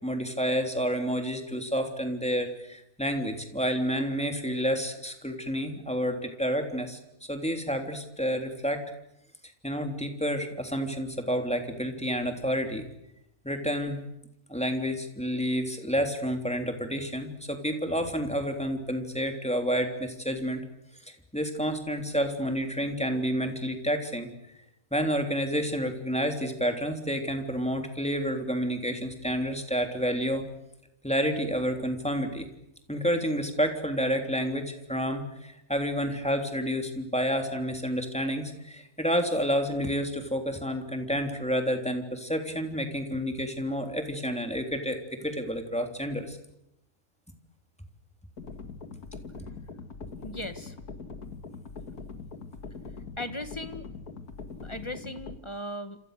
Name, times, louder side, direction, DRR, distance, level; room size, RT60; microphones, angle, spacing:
voice 1, 0.0-7.0 7.3-8.8 9.6-12.9 13.4-14.0 14.5-20.7 21.3-24.3 24.9-30.5 31.0-32.5 32.9-46.4, equal, 5° left, 4 dB, 3.3 m, -29 dB
sound 1, 48.4-55.4, left 4 dB, 80° left, 2.4 m, -42 dB
voice 2, 50.2-50.8 53.2-53.9 54.6-56.0, left 1 dB, 20° left, 9 dB, 1.8 m, -37 dB
28.0 x 27.5 x 6.7 m, 0.83 s
omnidirectional pair, 1.6 m